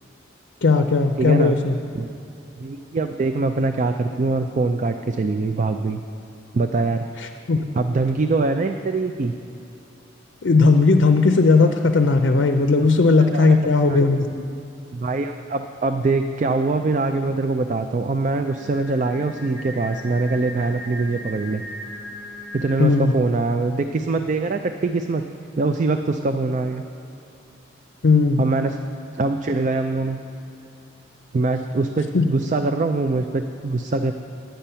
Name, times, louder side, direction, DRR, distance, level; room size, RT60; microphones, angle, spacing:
voice 1, 0.6-1.8 7.2-7.6 10.4-14.4 22.8-23.1 28.0-28.4 32.1-32.3, left 3 dB, 65° left, 6 dB, 0.5 m, -17 dB
voice 2, 1.2-1.6 1.9-2.1 2.6-6.0 6.5-7.1 7.7-9.3 12.8-12.9 13.2-13.6 13.9-14.0 14.9-21.6 22.5-25.2 25.5-26.8 28.4-28.8 29.1-30.2 31.3-34.1, right 3 dB, 40° right, 7 dB, 0.3 m, -23 dB
Singing, 18.5-23.2, equal, 5° left, 2.0 m, -38 dB
10.5 x 9.0 x 5.6 m, 2.9 s
head